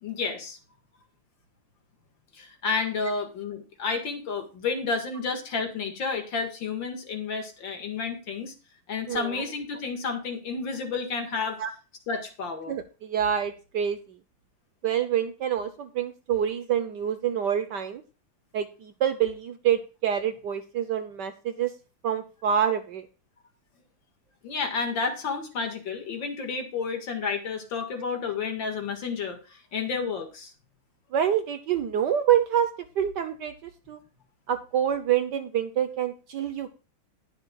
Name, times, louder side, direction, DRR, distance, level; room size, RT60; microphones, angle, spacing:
voice 1, 0.0-0.6 2.3-8.5 8.9-11.6 12.1-12.8 24.4-30.5, left 5 dB, 60° left, 5 dB, 2.5 m, -31 dB
voice 2, 12.7-14.0 14.8-18.0 18.5-21.7 22.0-23.1 31.1-32.7 33.0-34.0 34.5-36.7, right 9 dB, 65° right, 9 dB, 1.2 m, -26 dB
19.5 x 6.7 x 2.3 m, 0.33 s
omnidirectional pair, 2.3 m